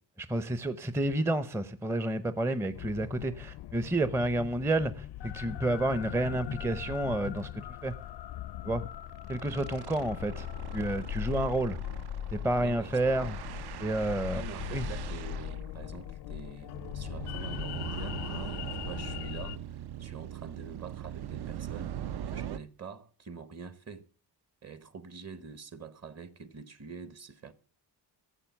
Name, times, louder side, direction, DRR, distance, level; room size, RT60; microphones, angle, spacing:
voice 1, 0.2-7.9 8.6-8.8 9.3-10.5 10.7-11.8 12.3-13.3 13.8-14.4 14.7-14.9, right 1 dB, 5° right, 0.5 m, -30 dB
sound 1, 2.7-19.6, left 12 dB, 75° left, 0.5 m, -40 dB
sound 2, 5.9-6.0 6.4-6.5 6.8-7.0 7.2-7.4 8.7-22.6, right 10 dB, 65° right, 0.6 m, -41 dB
voice 2, 12.6-13.4 14.3-22.0 22.3-24.1 24.6-27.5, right 5 dB, 40° right, 1.0 m, -46 dB
13.5 x 7.5 x 7.1 m
cardioid pair, 115°, 42 cm